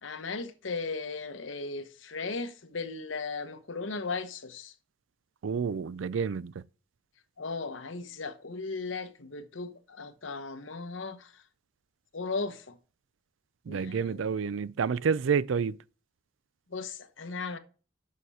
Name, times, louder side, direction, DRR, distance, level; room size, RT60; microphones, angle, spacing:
voice 1, 0.0-4.7 7.4-11.4 12.1-12.8 13.7-14.3 16.7-17.6, left 4 dB, 80° left, 1.0 m, -37 dB
voice 2, 5.4-6.5 13.7-15.8, right 6 dB, 85° right, 0.4 m, -29 dB
6.7 x 6.5 x 5.5 m
head